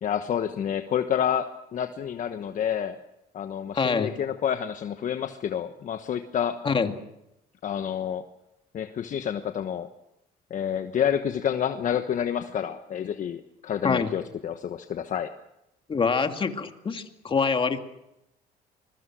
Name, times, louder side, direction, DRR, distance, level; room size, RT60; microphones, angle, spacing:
voice 1, 0.0-3.0 3.3-6.6 7.6-8.2 8.7-9.9 10.5-15.3, left 9 dB, 50° left, 8 dB, 1.2 m, -29 dB
voice 2, 3.7-4.1 6.6-6.9 13.8-14.1 15.9-17.8, left 5 dB, 30° left, 6 dB, 2.3 m, -25 dB
26.0 x 21.5 x 6.3 m, 0.85 s
cardioid pair, 110°, 17 cm